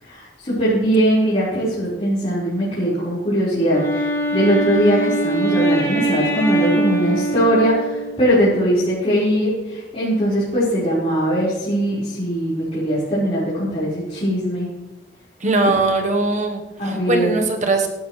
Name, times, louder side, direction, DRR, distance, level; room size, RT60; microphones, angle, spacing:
voice 1, 0.0-14.7 16.8-17.3, equal, 35° left, -11 dB, 4.9 m, -20 dB
Wind instrument woodwind instrument, 3.7-8.4, right 1 dB, 15° left, 2.5 m, -22 dB
voice 2, 15.4-17.9, right 3 dB, 40° right, 3 dB, 1.3 m, -20 dB
19.0 x 11.5 x 3.3 m, 1.0 s
head